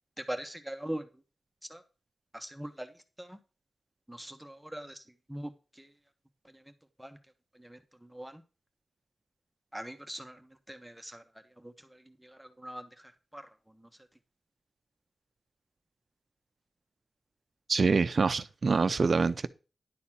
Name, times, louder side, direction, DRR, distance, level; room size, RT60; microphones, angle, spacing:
voice 1, 0.3-1.1 1.7-1.8 2.3-2.9 3.2-3.4 4.1-5.0 5.3-5.5 5.8-5.9 6.5-6.6 7.0-7.2 7.6-8.4 9.7-10.4 10.7-11.2 11.6-12.9 13.3-13.5, right 1 dB, 5° right, 1.3 m, -41 dB
voice 2, 17.7-19.5, right 4 dB, 60° right, 0.7 m, -25 dB
11.0 x 4.2 x 7.3 m
wide cardioid pair, 85°, 0 cm